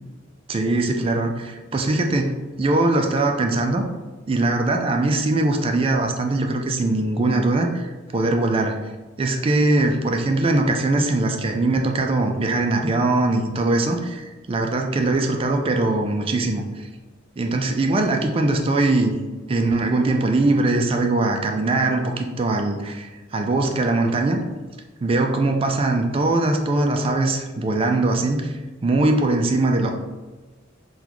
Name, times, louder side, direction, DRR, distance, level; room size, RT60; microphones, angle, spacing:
voice 1, 0.5-3.8 4.3-8.8 9.2-16.9 17.4-19.1 19.5-24.4 25.0-28.5 28.8-29.9, right 2 dB, 30° right, 3 dB, 0.3 m, -21 dB
3.9 x 2.3 x 2.9 m, 1.3 s
head